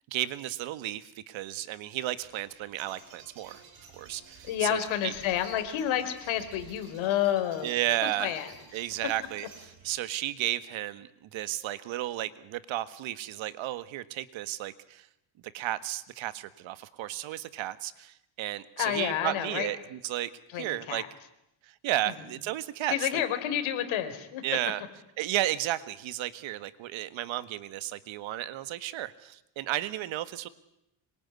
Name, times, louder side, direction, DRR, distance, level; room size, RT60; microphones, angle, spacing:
voice 1, 0.1-3.6 3.9-5.1 7.6-8.4 8.7-15.1 15.5-20.3 20.6-21.0 21.8-23.1 24.4-24.8 25.2-30.5, right 14 dB, 75° right, 14 dB, 1.7 m, -33 dB
sound 1, 2.2-10.0, right 5 dB, 50° right, 7.2 m, -53 dB
voice 2, 4.4-7.8 8.0-8.5 18.8-19.7 20.5-21.1 22.9-24.4, left 11 dB, 80° left, 9 dB, 4.0 m, -29 dB
26.0 x 23.0 x 9.7 m, 0.85 s
cardioid pair, 165°, 47 cm